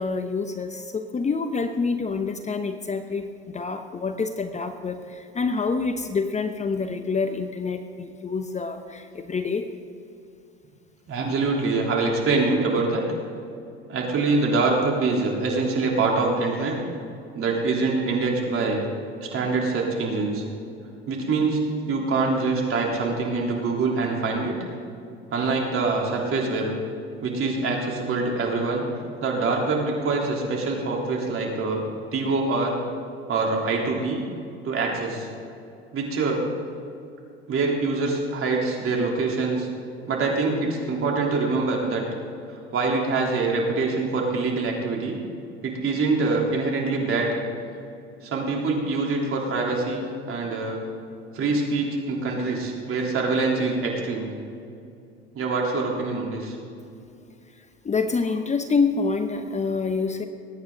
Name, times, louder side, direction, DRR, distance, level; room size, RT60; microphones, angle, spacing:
voice 1, 0.0-9.6 57.8-60.3, left 4 dB, 20° left, 8 dB, 0.9 m, -27 dB
voice 2, 11.1-13.0 13.9-16.8 17.3-18.8 19.2-20.4 21.1-21.6 21.9-24.5 25.3-26.7 27.2-28.9 29.2-31.8 32.1-32.8 33.3-34.2 34.6-35.3 35.9-36.4 37.5-39.7 40.1-42.0 42.5-45.2 45.6-47.3 48.2-50.8 51.3-54.3 55.3-56.6, right 3 dB, 45° right, -1 dB, 3.6 m, -24 dB
21.5 x 9.5 x 3.9 m, 2.5 s
hypercardioid pair, 75°, 31 cm